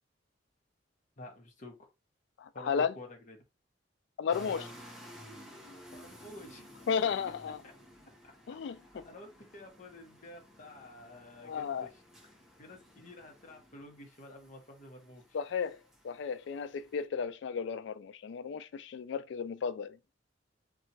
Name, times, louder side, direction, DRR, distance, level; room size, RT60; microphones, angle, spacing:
voice 1, 1.2-1.8 2.5-3.4 4.3-4.7 5.9-6.7 7.6-7.7 9.0-15.4, left 1 dB, 40° left, 0.8 m, -50 dB
voice 2, 2.4-2.9 4.2-4.6 6.9-7.6 8.5-8.8 11.5-11.9 15.3-15.8 16.0-20.0, left 6 dB, 65° left, 0.3 m, -33 dB
sound 1, 4.3-17.0, equal, ahead, 0.6 m, -55 dB
2.8 x 2.3 x 2.7 m
head